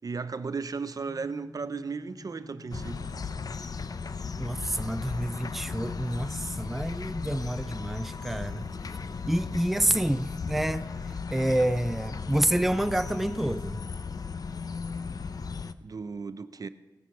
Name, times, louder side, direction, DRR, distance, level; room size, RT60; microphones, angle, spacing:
voice 1, 0.0-3.1 15.8-16.7, right 4 dB, 50° right, 0.5 m, -35 dB
sound 1, 1.0-5.6, left 2 dB, 70° left, 6.8 m, -50 dB
sound 2, 2.7-15.7, left 5 dB, 55° left, 0.6 m, -36 dB
voice 2, 4.4-8.7 9.3-10.9 11.3-13.8, right 1 dB, 5° right, 0.4 m, -28 dB
16.5 x 14.0 x 4.7 m
wide cardioid pair, 100°, 8 cm